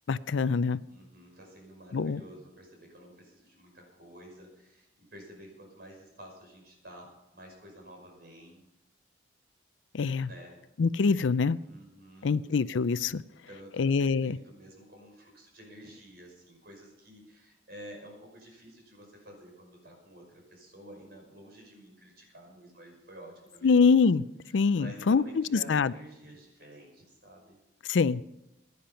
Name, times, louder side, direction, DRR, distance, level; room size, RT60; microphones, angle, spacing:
voice 1, 0.1-0.8 1.9-2.2 9.9-10.3 10.8-11.6 12.2-13.2 13.8-14.4 23.6-24.2 24.5-25.9 27.9-28.2, left 5 dB, 70° left, 17 dB, 0.5 m, -24 dB
voice 2, 0.9-8.6 10.2-10.6 11.6-12.6 13.3-23.8 24.8-27.6, equal, 55° right, 1 dB, 5.5 m, -50 dB
16.5 x 10.5 x 5.7 m, 0.90 s
head